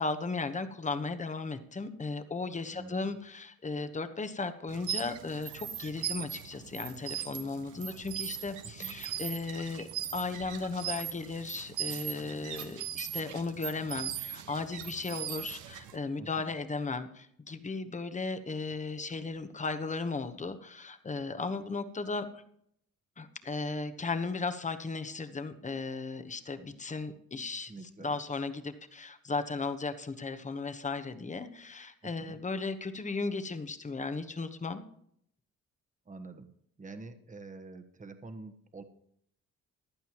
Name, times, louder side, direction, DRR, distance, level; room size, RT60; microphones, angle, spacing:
voice 1, 0.0-22.4 23.2-34.8, left 3 dB, 25° left, 10 dB, 1.1 m, -36 dB
voice 2, 2.7-3.1 8.8-8.9 16.2-16.5 27.7-28.2 32.0-32.4 36.0-36.5 36.8-38.8, right 3 dB, 25° right, 7 dB, 1.3 m, -47 dB
sound 1, 4.7-16.0, right 10 dB, 85° right, 1.1 m, -39 dB
15.5 x 11.0 x 3.0 m, 0.69 s
cardioid pair, 90°, 30 cm